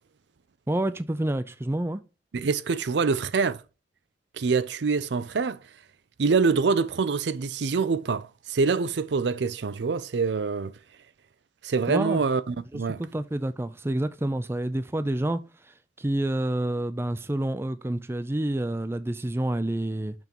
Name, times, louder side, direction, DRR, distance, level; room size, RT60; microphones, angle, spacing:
voice 1, 0.7-2.0 11.9-12.2 12.7-20.1, right 1 dB, 15° right, 0.4 m, -28 dB
voice 2, 2.3-3.6 4.3-5.6 6.2-10.7 11.6-13.0, right 5 dB, 75° right, 0.5 m, -25 dB
6.0 x 4.4 x 5.2 m
head